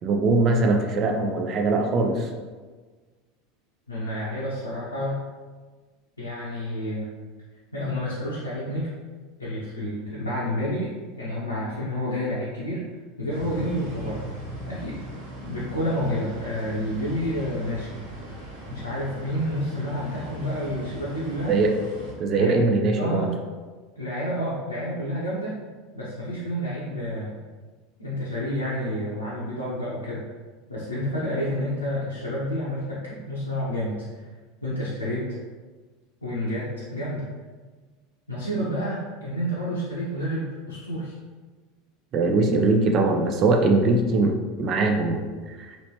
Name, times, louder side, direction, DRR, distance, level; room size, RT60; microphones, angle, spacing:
voice 1, 0.0-2.3 21.5-21.7 22.2-23.3 42.1-45.8, right 3 dB, 40° right, 3 dB, 0.5 m, -22 dB
voice 2, 3.9-5.2 6.2-7.1 7.7-8.9 9.4-12.8 13.2-14.2 14.6-15.0 15.5-18.0 18.7-21.6 22.3-22.6 23.0-23.4 24.0-25.6 25.9-27.3 28.0-30.2 30.7-34.3 34.6-35.3 36.2-37.3 38.3-41.1, equal, 90° left, -8 dB, 0.6 m, -29 dB
sound 1, 13.3-22.1, equal, 60° right, 1.1 m, -38 dB
3.1 x 2.9 x 2.8 m, 1.4 s
figure-of-eight pair, 80°, 0 cm